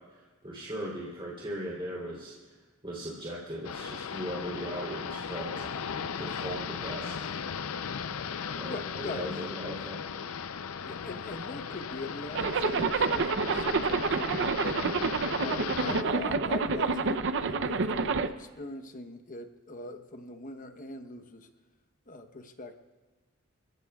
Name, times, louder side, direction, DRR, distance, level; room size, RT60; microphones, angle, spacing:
voice 1, 0.1-2.5 2.8-5.7 6.2-7.3 8.1-8.2 8.6-10.1, equal, 25° right, -6 dB, 3.1 m, -38 dB
sound 1, 3.6-16.0, left 6 dB, 85° left, 0.6 m, -37 dB
voice 2, 8.7-9.3 10.8-14.8 15.4-21.5 22.1-22.8, left 2 dB, 40° left, 7 dB, 1.0 m, -42 dB
Zipper (clothing), 12.3-18.3, right 4 dB, 60° right, 0.6 m, -28 dB
28.5 x 16.0 x 2.4 m, 1.2 s
head